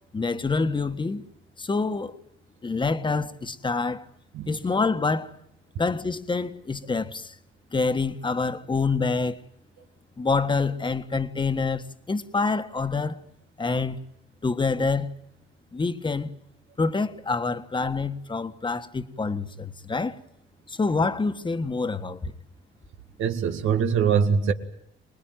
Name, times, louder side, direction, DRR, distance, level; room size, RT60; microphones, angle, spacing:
voice 1, 0.1-1.2 1.6-2.2 2.6-4.0 4.5-5.4 5.8-7.3 7.7-9.4 10.2-13.2 13.6-14.0 14.4-15.1 15.7-16.3 16.8-20.2 20.7-22.3, left 4 dB, 25° left, 1.5 m, -26 dB
voice 2, 23.2-24.5, right 6 dB, 85° right, 2.1 m, -22 dB
25.5 x 20.0 x 9.3 m
cardioid pair, 90°, 20 cm